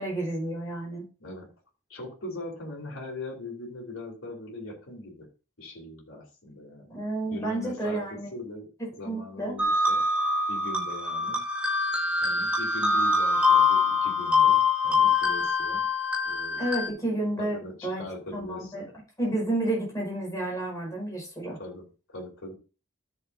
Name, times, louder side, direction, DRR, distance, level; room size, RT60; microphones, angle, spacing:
voice 1, 0.0-1.0 6.9-8.3 8.8-9.6 16.6-17.6 17.8-18.0 18.3-18.8 19.2-21.6, right 1 dB, 15° left, -3 dB, 5.1 m, -30 dB
voice 2, 1.9-5.3 5.6-6.9 7.3-8.7 9.0-10.0 10.5-11.4 12.2-15.9 16.2-16.9 17.4-18.7 21.6-22.5, left 2 dB, 65° left, -4 dB, 3.4 m, -40 dB
sound 1, 9.6-16.9, left 4 dB, 5° right, 1.1 m, -24 dB
13.5 x 6.6 x 2.7 m, 0.34 s
head